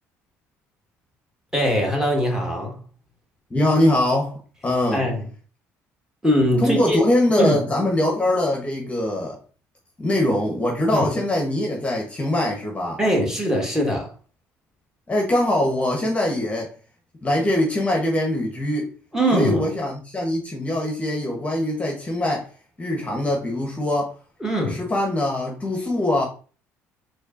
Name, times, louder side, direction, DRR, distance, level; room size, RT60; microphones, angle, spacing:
voice 1, 1.5-2.8 4.9-5.2 6.2-7.0 7.4-7.6 10.9-11.1 13.0-14.1 19.1-19.6 24.4-24.8, equal, 5° right, 1.4 m, -21 dB
voice 2, 3.5-5.0 6.6-9.4 10.0-13.0 15.1-16.7 17.2-19.0 19.3-22.5 22.8-24.1 24.7-26.2, left 1 dB, 20° left, 1.0 m, -22 dB
4.3 x 2.8 x 2.6 m
supercardioid pair, 70°, 7 cm